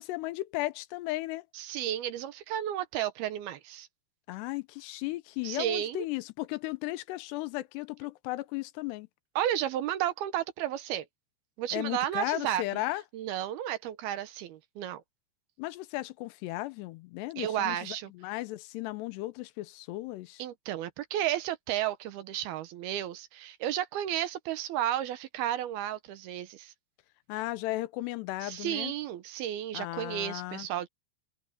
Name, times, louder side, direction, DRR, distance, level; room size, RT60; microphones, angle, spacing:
voice 1, 0.0-1.5 4.3-9.1 11.7-13.0 15.6-20.4 27.3-28.9 29.7-30.7, left 18 dB, 80° left, 2.8 m, -35 dB
voice 2, 1.5-3.9 5.4-6.1 9.4-11.1 11.6-12.6 13.1-15.0 17.4-18.1 20.4-26.7 28.4-30.9, right 12 dB, 75° right, 2.7 m, -32 dB
omnidirectional pair, 4.9 m